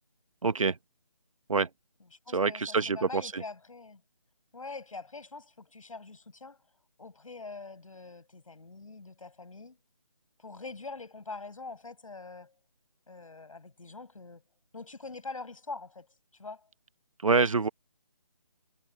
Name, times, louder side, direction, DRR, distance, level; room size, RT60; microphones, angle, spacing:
voice 1, 0.4-0.8 1.5-1.7 2.3-3.4 17.2-17.7, right 4 dB, 70° right, 1.3 m, -26 dB
voice 2, 2.3-4.0 4.5-6.6 7.0-9.8 10.4-12.5 13.1-14.4 14.7-16.1 16.4-16.7, left 3 dB, 70° left, 8.0 m, -44 dB
hypercardioid pair, 175°, 18 cm